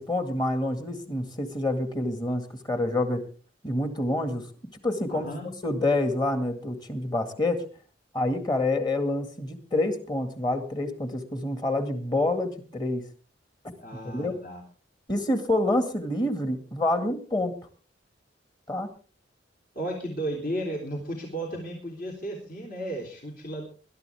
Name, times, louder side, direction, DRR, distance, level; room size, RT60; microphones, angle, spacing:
voice 1, 0.0-3.2 3.6-4.4 4.8-7.6 8.1-13.0 14.0-14.4 15.1-17.5 18.7-18.9, left 2 dB, 25° left, 8 dB, 2.1 m, -27 dB
voice 2, 5.1-5.5 13.8-14.6 19.8-23.6, right 1 dB, 50° left, 1 dB, 3.5 m, -34 dB
21.0 x 12.5 x 3.5 m, 0.37 s
head